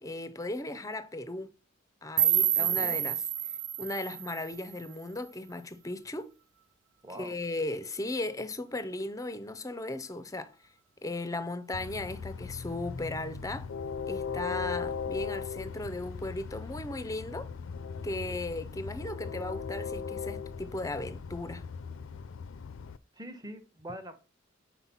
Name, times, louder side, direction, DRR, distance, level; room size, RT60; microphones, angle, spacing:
voice 1, 0.0-1.5 2.0-3.2 3.4-6.3 7.1-10.6 11.0-13.7 14.1-17.5 18.0-21.6, left 2 dB, 15° left, 0.5 m, -36 dB
sound 1, 2.2-5.2, right 11 dB, 70° right, 0.5 m, -29 dB
voice 2, 2.5-3.1 7.0-7.4 23.1-24.1, equal, 20° right, 0.9 m, -44 dB
Train, 11.7-23.0, left 5 dB, 85° left, 0.4 m, -38 dB
5.7 x 4.4 x 5.5 m
head